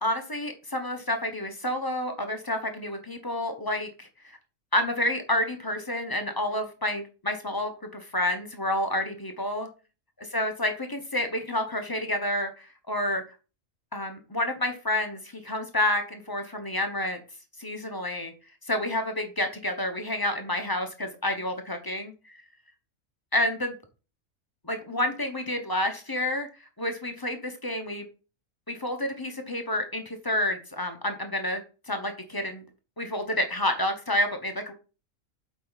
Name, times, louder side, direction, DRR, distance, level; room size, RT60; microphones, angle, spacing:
voice 1, 0.0-4.4 4.7-9.7 10.2-13.2 13.9-17.2 17.6-18.3 18.7-22.4 23.3-23.7 24.6-26.5 26.8-28.0 28.7-31.6 31.9-32.6 33.0-34.7, left 1 dB, 20° left, 5 dB, 0.9 m, -29 dB
7.6 x 5.0 x 4.1 m, 0.34 s
omnidirectional pair, 1.4 m